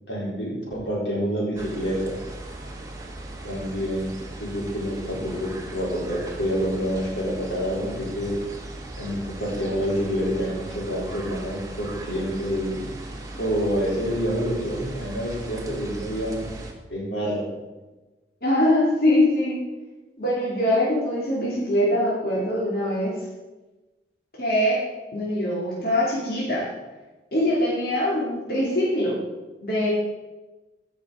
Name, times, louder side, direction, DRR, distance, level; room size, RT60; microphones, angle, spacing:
voice 1, 0.1-2.2 3.4-4.1 4.4-8.4 9.0-12.9 13.4-16.5 16.9-17.5, equal, 85° left, -4 dB, 3.9 m, -27 dB
sound 1, 1.5-16.7, right 2 dB, 20° right, 1.4 m, -38 dB
voice 2, 18.4-19.6 20.2-23.1 24.4-24.8 25.1-26.7 27.3-29.2 29.6-29.9, left 1 dB, 55° left, -6 dB, 2.7 m, -23 dB
14.5 x 6.1 x 5.0 m, 1.1 s
head